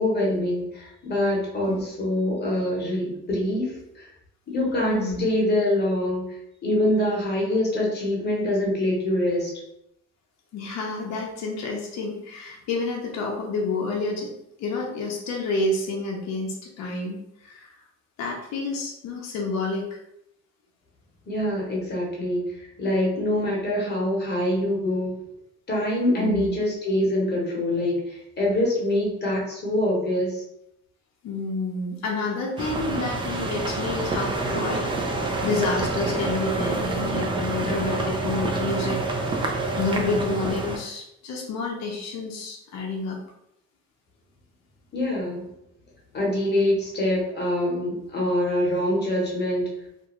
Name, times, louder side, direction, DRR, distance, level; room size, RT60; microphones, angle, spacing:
voice 1, 0.0-4.1 4.5-6.3 6.6-9.5 21.3-25.1 25.7-30.4 44.9-45.4 46.1-49.7, left 1 dB, 35° left, -3 dB, 0.9 m, -24 dB
voice 2, 4.9-5.2 10.5-14.3 14.6-17.7 18.2-20.0 26.2-26.5 31.2-34.8 35.4-39.0 39.8-43.2, left 3 dB, 60° left, -1 dB, 0.6 m, -29 dB
sound 1, 32.6-40.8, right 2 dB, 15° right, 0.3 m, -27 dB
2.5 x 2.3 x 2.9 m, 0.80 s
cardioid pair, 125°, 31 cm